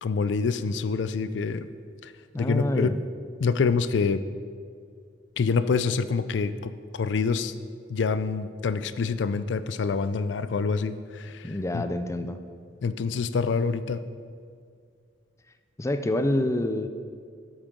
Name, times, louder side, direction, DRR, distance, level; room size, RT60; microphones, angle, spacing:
voice 1, 0.0-1.7 2.0-2.1 2.4-3.0 3.4-4.2 5.4-7.5 7.9-11.8 12.8-14.0, left 5 dB, 85° left, 13 dB, 0.4 m, -26 dB
voice 2, 2.3-3.0 11.4-12.4 15.8-16.9, left 1 dB, 15° left, 9 dB, 0.5 m, -27 dB
12.0 x 8.8 x 3.8 m, 2.2 s
head